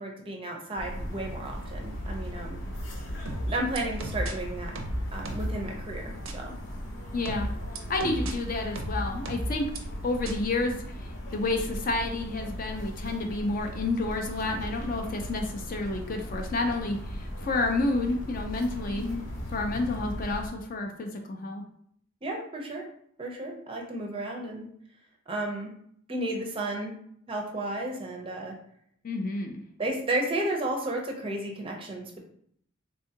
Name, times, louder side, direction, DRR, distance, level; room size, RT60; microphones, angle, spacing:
voice 1, 0.0-2.6 3.4-4.8 5.1-6.5 8.0-8.3 18.9-19.2 22.2-22.9 23.2-24.7 25.3-25.7 26.1-26.9 27.3-28.5 29.8-32.2, right 1 dB, 25° right, 1 dB, 0.5 m, -33 dB
sound 1, 0.8-20.5, equal, 60° left, 0.8 m, -38 dB
sound 2, 3.3-4.3 4.8-5.6 6.3-6.4 7.3-8.3 8.8-9.8 10.3-10.4, equal, 85° right, 0.5 m, -33 dB
voice 2, 7.1-7.5 7.9-9.7 10.0-10.7 11.3-19.1 19.5-21.6 29.0-29.6, left 2 dB, 45° left, 3 dB, 0.4 m, -30 dB
3.5 x 2.3 x 2.7 m, 0.66 s
head